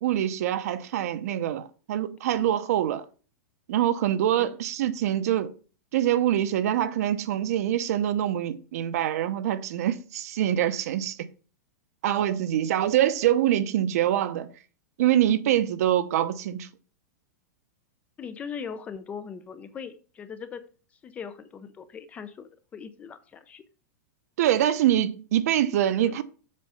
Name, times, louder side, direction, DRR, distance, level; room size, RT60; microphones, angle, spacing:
voice 1, 0.0-3.0 3.7-5.5 5.9-11.3 12.0-14.5 15.0-16.7 24.4-26.2, right 11 dB, 60° right, 0.8 m, -24 dB
voice 2, 18.2-20.6 21.0-23.6 26.0-26.2, left 6 dB, 15° left, 0.5 m, -40 dB
7.5 x 4.6 x 5.5 m
supercardioid pair, 165°, 10 cm